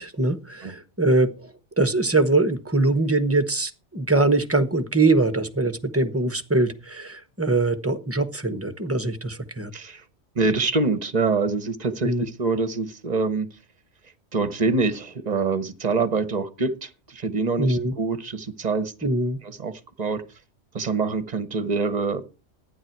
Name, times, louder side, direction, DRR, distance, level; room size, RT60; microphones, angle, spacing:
voice 1, 0.0-1.5 1.8-9.7 12.0-12.2 17.6-17.9 19.0-19.4, right 2 dB, 15° right, 11 dB, 0.9 m, -22 dB
voice 2, 9.7-10.0 10.4-13.5 14.3-19.1 19.4-20.2 20.7-22.2, right 4 dB, 40° right, 13 dB, 1.0 m, -25 dB
12.0 x 9.6 x 4.6 m, 0.32 s
omnidirectional pair, 1.2 m